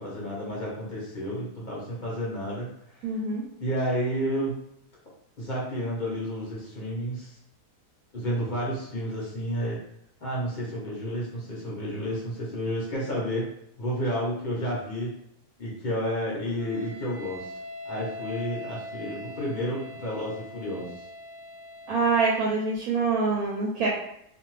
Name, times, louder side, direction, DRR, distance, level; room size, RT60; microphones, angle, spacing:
voice 1, 0.0-3.2 3.6-4.6 5.4-7.3 8.1-9.8 10.2-13.5 13.8-15.1 15.6-17.5 17.8-21.0, equal, 50° left, -5 dB, 0.6 m, -31 dB
voice 2, 3.0-3.4 21.9-23.9, right 4 dB, 70° right, -3 dB, 0.9 m, -25 dB
Wind instrument woodwind instrument, 16.6-22.7, left 1 dB, 90° right, 1.2 m, -42 dB
2.5 x 2.4 x 3.0 m, 0.76 s
omnidirectional pair, 1.8 m